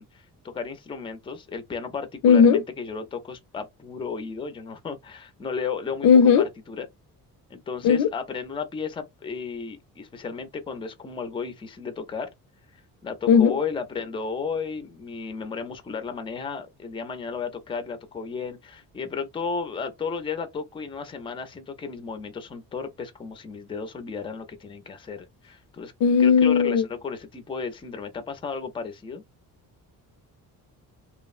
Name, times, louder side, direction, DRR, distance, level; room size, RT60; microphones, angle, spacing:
voice 1, 0.0-6.1 6.4-6.9 7.5-12.3 12.7-25.9 26.2-29.2, left 5 dB, 15° left, 0.4 m, -34 dB
voice 2, 2.2-2.6 6.0-6.5 7.8-8.1 13.3-13.5 26.0-26.8, left 6 dB, 80° left, 0.6 m, -16 dB
3.0 x 2.0 x 2.4 m
cardioid pair, 145°, 35 cm